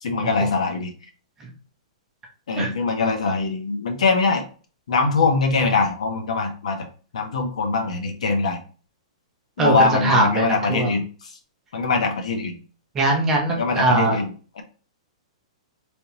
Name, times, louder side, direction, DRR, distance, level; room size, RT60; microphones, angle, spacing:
voice 1, 0.0-0.9 2.5-4.4 4.9-6.9 7.1-8.6 9.6-11.3 11.7-12.6 13.5-14.6, left 4 dB, 70° left, 5 dB, 0.9 m, -22 dB
voice 2, 10.0-10.9 12.9-14.2, right 2 dB, 10° right, 0 dB, 0.6 m, -20 dB
3.4 x 2.9 x 2.9 m, 0.37 s
hypercardioid pair, 180°, 4 cm